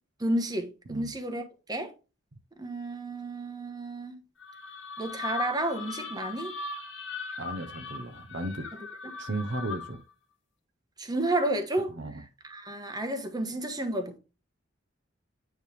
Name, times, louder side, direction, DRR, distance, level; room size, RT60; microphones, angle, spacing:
voice 1, 0.2-1.4 1.7-1.9 2.6-4.1 5.0-6.5 9.0-9.2 11.0-12.0 12.4-14.2, right 1 dB, 20° right, 1.1 m, -31 dB
sound 1, 4.4-10.1, left 4 dB, 80° left, 1.7 m, -39 dB
voice 2, 7.4-8.7 9.2-10.0 12.0-12.1, right 2 dB, 60° right, 0.8 m, -35 dB
9.4 x 3.4 x 3.4 m
head